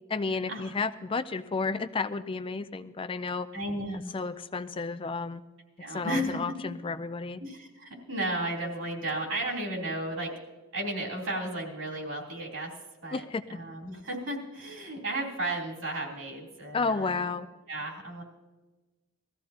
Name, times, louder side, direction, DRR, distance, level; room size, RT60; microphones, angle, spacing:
voice 1, 0.1-3.5 3.9-5.4 5.9-7.4 13.1-13.4 16.7-17.5, left 4 dB, 25° left, 12 dB, 0.4 m, -32 dB
voice 2, 3.5-4.2 5.8-6.7 7.4-10.3 10.7-12.7 13.0-13.2 13.5-17.1 17.7-18.2, right 1 dB, 65° right, -1 dB, 3.2 m, -34 dB
20.0 x 14.5 x 2.8 m, 1.2 s
head